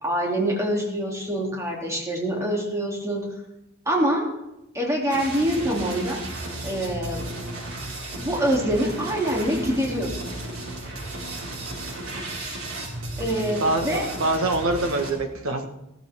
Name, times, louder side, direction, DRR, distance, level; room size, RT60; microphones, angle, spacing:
voice 1, 0.0-3.2 3.8-4.2 4.7-6.2 6.6-7.2 8.2-10.2 13.2-14.0, right 1 dB, 15° right, -2 dB, 3.2 m, -25 dB
sound 1, 5.1-15.1, right 1 dB, 90° right, 5.1 m, -34 dB
voice 2, 14.2-15.7, right 2 dB, 70° right, 5 dB, 1.7 m, -24 dB
16.5 x 14.0 x 3.8 m, 0.88 s
head